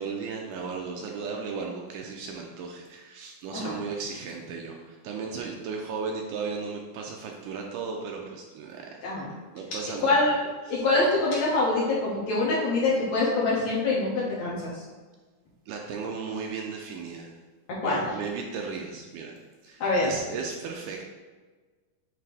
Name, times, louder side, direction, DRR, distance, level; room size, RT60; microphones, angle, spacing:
voice 1, 0.0-10.2 10.7-10.8 15.7-17.3 17.8-19.4 19.6-21.0, right 5 dB, 80° right, 1 dB, 2.0 m, -35 dB
voice 2, 10.0-10.4 10.7-14.8 17.8-18.1 19.8-20.1, left 2 dB, 60° left, -6 dB, 2.5 m, -25 dB
9.4 x 3.3 x 3.4 m, 1.4 s
omnidirectional pair, 4.0 m